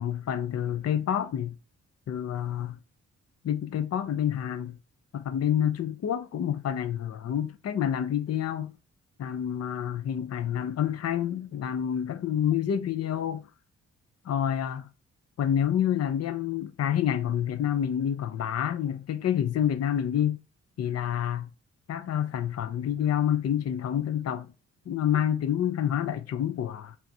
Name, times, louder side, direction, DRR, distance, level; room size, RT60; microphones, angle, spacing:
voice 1, 0.0-1.5 2.1-2.8 3.4-4.8 5.1-8.7 9.2-13.5 14.2-14.9 15.4-20.4 20.8-21.5 21.9-24.5 24.9-27.0, left 9 dB, 50° left, 0.7 m, -28 dB
4.5 x 3.5 x 2.7 m
hypercardioid pair, 45°, 33 cm